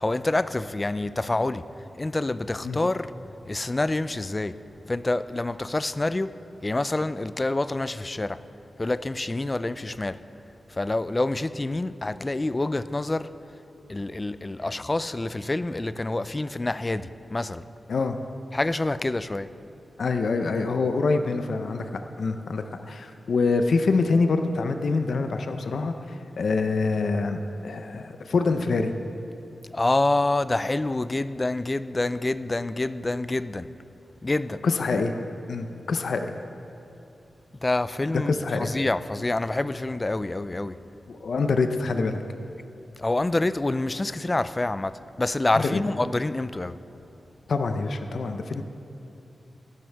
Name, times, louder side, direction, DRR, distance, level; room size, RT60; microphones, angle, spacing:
voice 1, 0.0-1.6 2.0-3.1 3.5-4.6 4.9-6.3 6.6-8.4 8.8-10.2 10.8-13.3 13.9-17.6 18.5-19.5 29.7-33.7 34.2-34.6 37.6-40.8 43.0-46.8, left 2 dB, 20° left, 0.3 m, -27 dB
voice 2, 20.0-21.9 22.2-28.9 34.6-35.1 35.5-36.3 38.1-38.7 41.1-42.2 45.5-45.8 47.5-48.6, left 4 dB, 70° left, 0.6 m, -25 dB
16.0 x 12.0 x 3.5 m
wide cardioid pair, 120°, 0 cm